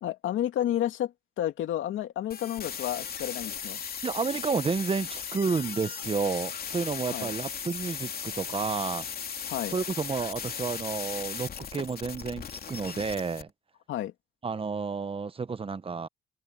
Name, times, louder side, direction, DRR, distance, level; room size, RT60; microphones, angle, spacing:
voice 1, 0.0-3.8 7.1-7.3 9.5-9.8 13.9-14.1, left 12 dB, 80° left, 2.4 m, -31 dB
sound 1, 2.3-13.4, left 7 dB, 50° left, 2.9 m, -37 dB
voice 2, 4.0-9.1 9.7-13.5 14.4-16.1, right 5 dB, 30° right, 1.1 m, -31 dB
cardioid pair, 90°, 20 cm